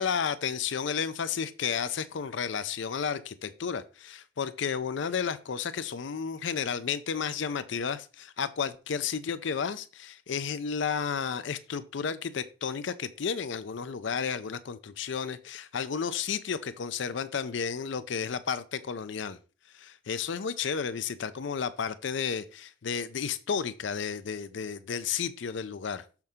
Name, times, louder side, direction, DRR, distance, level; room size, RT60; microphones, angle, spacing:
voice 1, 0.0-19.4 19.7-26.0, left 6 dB, 60° left, 0.4 m, -32 dB
6.6 x 5.8 x 3.6 m
head